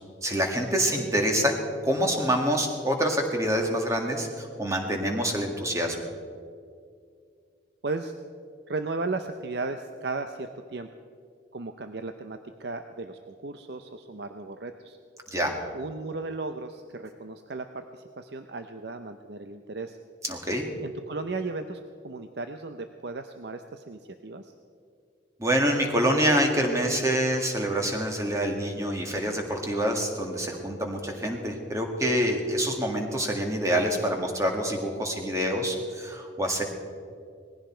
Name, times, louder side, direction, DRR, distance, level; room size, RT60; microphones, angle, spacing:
voice 1, 0.2-1.5 1.8-6.0 15.3-15.6 20.2-20.7 25.4-36.6, equal, 15° right, 2 dB, 1.9 m, -26 dB
voice 2, 8.7-10.9 11.5-15.0 15.7-20.0 20.8-24.5, right 3 dB, 60° right, 7 dB, 0.6 m, -35 dB
19.5 x 15.5 x 4.5 m, 2.3 s
head